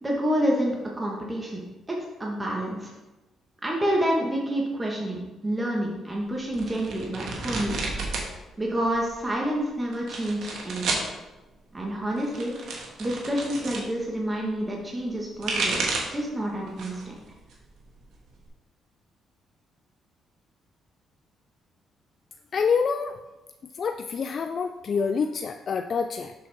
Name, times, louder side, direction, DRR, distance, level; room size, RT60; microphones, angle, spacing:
voice 1, 0.0-1.6 1.9-2.9 3.6-7.7 8.6-11.0 11.7-12.6 13.0-17.2, equal, 20° right, -2 dB, 1.4 m, -28 dB
sound 1, 6.5-8.3 8.6-9.3 9.9-11.1 12.1-13.9 15.1-16.2 16.7-17.1 17.5-18.5, right 3 dB, 75° right, 1.4 m, -31 dB
voice 2, 22.5-23.2 23.6-26.3, left 5 dB, 50° left, 7 dB, 0.3 m, -27 dB
6.7 x 6.5 x 3.5 m, 1.1 s
cardioid pair, 90°, 0 cm